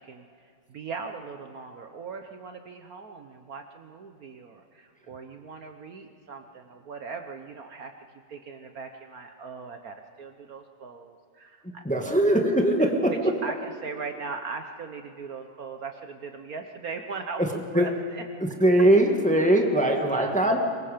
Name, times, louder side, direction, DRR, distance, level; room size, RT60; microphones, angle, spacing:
voice 1, 0.0-7.9 8.3-11.8 12.8-18.2 19.7-20.4, right 4 dB, 55° right, 5 dB, 1.3 m, -39 dB
voice 2, 11.6-13.3 17.4-17.5 17.7-17.9 18.4-20.6, right 1 dB, 5° left, 3 dB, 1.4 m, -21 dB
23.5 x 21.5 x 5.1 m, 2.3 s
omnidirectional pair, 2.0 m